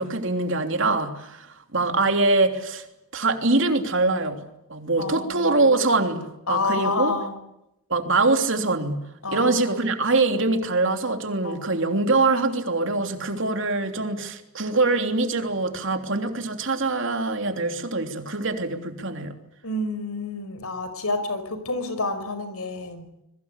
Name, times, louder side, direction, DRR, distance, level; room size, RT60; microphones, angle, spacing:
voice 1, 0.0-2.9 3.1-7.1 7.9-9.0 9.3-19.3, right 3 dB, 60° right, 5 dB, 3.3 m, -23 dB
voice 2, 5.0-5.8 6.5-7.3 9.2-9.9 11.4-11.7 19.6-23.1, left 2 dB, 85° left, 10 dB, 5.3 m, -29 dB
27.0 x 22.0 x 8.3 m, 0.85 s
head